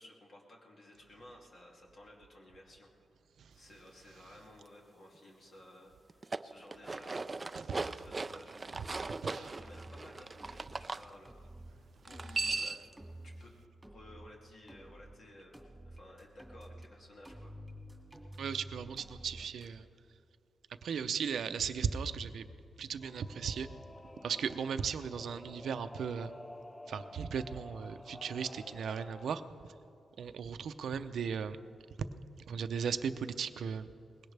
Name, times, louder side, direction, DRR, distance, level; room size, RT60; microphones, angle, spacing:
voice 1, 0.0-2.9 3.5-7.2 7.6-8.6 9.2-11.3 11.7-12.9 13.2-13.5 13.9-17.6, left 1 dB, 55° left, -1 dB, 2.5 m, -56 dB
sound 1, 6.1-11.0 12.0-12.9, right 3 dB, 30° right, 0.3 m, -38 dB
sound 2, 8.8-9.2 9.5-10.0 10.4-10.9 11.3-11.7 12.1-12.6 13.0-13.4 13.8-14.3 14.7-15.2 15.5-16.9 17.2-19.7, right 1 dB, 5° right, 2.4 m, -50 dB
voice 2, 18.4-19.8 20.8-22.5 22.8-23.7 24.2-26.3 26.9-29.7 30.2-31.6 32.0-32.1 32.5-33.9, right 6 dB, 80° right, 11 dB, 0.6 m, -36 dB
Singing / Musical instrument, 23.0-29.4, left 1 dB, 15° left, 0.5 m, -51 dB
20.5 x 17.0 x 3.4 m, 2.6 s
wide cardioid pair, 110°, 0 cm